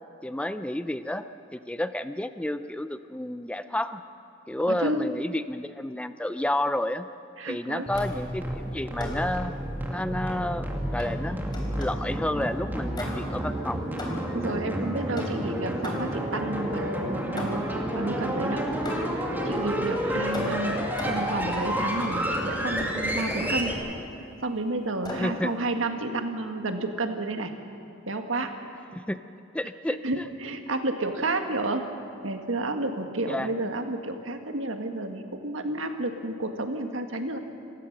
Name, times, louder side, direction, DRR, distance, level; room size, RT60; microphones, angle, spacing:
voice 1, 0.2-1.2 1.5-4.0 4.5-7.1 7.5-9.6 9.9-11.4 11.8-13.8 25.2-25.5 28.9-29.2 29.5-30.3 33.3-33.5, left 1 dB, 5° left, 11 dB, 0.4 m, -30 dB
voice 2, 4.7-5.0 7.4-7.9 14.3-17.7 17.9-18.6 19.4-20.8 21.0-23.7 24.4-27.5 28.1-28.5 30.0-31.9 32.2-37.4, right 2 dB, 75° right, 5 dB, 1.7 m, -31 dB
sound 1, 7.9-23.7, right 1 dB, 10° right, 2.1 m, -30 dB
sound 2, 8.0-8.3 9.0-9.4 11.0-12.1 12.9-13.5 14.0-14.5 15.2-16.3 17.4-17.8 18.9-19.3 20.3-21.4 22.8-23.0 23.3-24.0 25.0-25.4, left 1 dB, 20° left, 3.5 m, -38 dB
28.0 x 16.0 x 6.6 m, 2.6 s
head